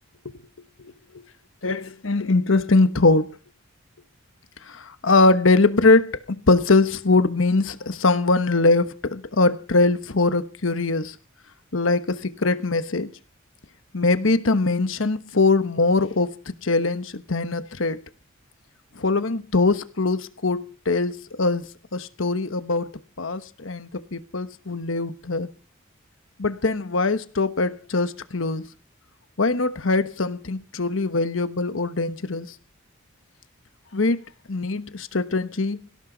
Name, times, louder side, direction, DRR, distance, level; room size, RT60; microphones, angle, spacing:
voice 1, 1.6-3.4 4.6-11.2 11.7-13.1 13.9-18.0 18.9-22.9 23.2-25.5 26.4-28.6 29.4-32.5 33.9-34.2 34.5-35.8, left 3 dB, 75° left, 1.1 m, -22 dB
18.5 x 17.0 x 4.0 m
head